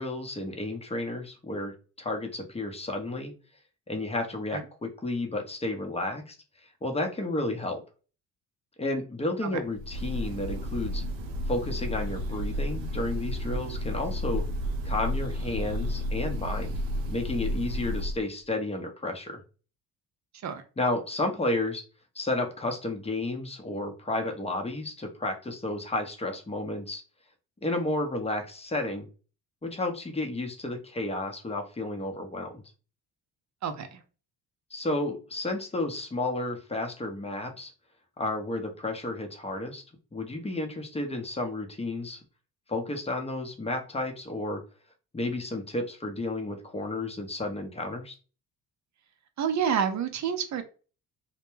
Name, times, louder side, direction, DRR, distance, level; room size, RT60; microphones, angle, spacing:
voice 1, 0.0-3.3 3.9-6.4 6.8-7.8 8.8-11.0 11.5-14.4 14.8-16.7 17.1-19.4 20.8-21.8 22.2-27.0 27.6-29.1 29.6-32.6 34.7-37.7 38.2-39.8 40.1-42.2 42.7-44.6 45.1-48.1, left 2 dB, 15° left, 4 dB, 0.7 m, -32 dB
Breathing / Bird, 9.7-18.3, equal, 75° right, 0.6 m, -32 dB
voice 2, 33.6-34.0 49.4-50.6, right 7 dB, 40° right, 7 dB, 0.6 m, -28 dB
2.2 x 2.1 x 3.1 m, 0.36 s
supercardioid pair, 60°, 44 cm